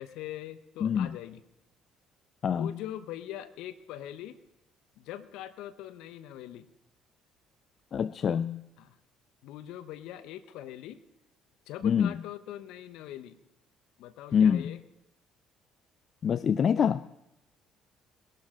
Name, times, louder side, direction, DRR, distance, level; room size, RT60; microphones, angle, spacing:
voice 1, 0.0-1.4 2.5-4.4 5.0-6.7 8.8-9.0 9.4-11.0 11.7-13.4 14.0-14.8, left 12 dB, 75° left, 13 dB, 0.9 m, -42 dB
voice 2, 0.8-1.1 2.4-2.8 7.9-8.6 11.8-12.1 14.3-14.8 16.2-17.1, left 7 dB, 50° left, 17 dB, 0.4 m, -25 dB
21.5 x 12.0 x 3.7 m, 0.87 s
hypercardioid pair, 60°, 0 cm